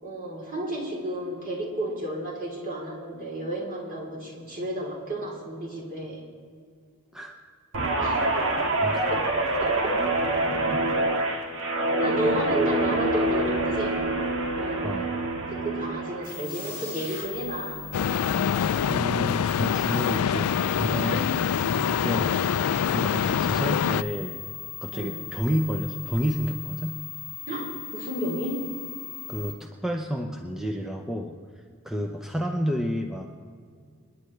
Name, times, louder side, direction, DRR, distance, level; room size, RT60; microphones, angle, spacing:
voice 1, 0.0-6.2 8.0-8.2 9.1-9.2 9.5-9.9 12.0-14.1 14.6-14.9 15.6-17.8 24.9-25.2 27.5-28.6, right 1 dB, 40° right, -3 dB, 3.5 m, -32 dB
Guitar, 7.7-16.3 16.7-17.0, right 2 dB, 60° right, 1.8 m, -26 dB
sound 1, 16.2-29.5, left 8 dB, 85° right, 4.8 m, -38 dB
sound 2, 17.9-24.0, left 8 dB, 80° left, 0.4 m, -25 dB
voice 2, 18.9-22.6 22.9-24.4 24.8-26.9 29.3-33.3, equal, ahead, 2 dB, 0.7 m, -30 dB
29.0 x 10.5 x 3.3 m, 2.1 s
head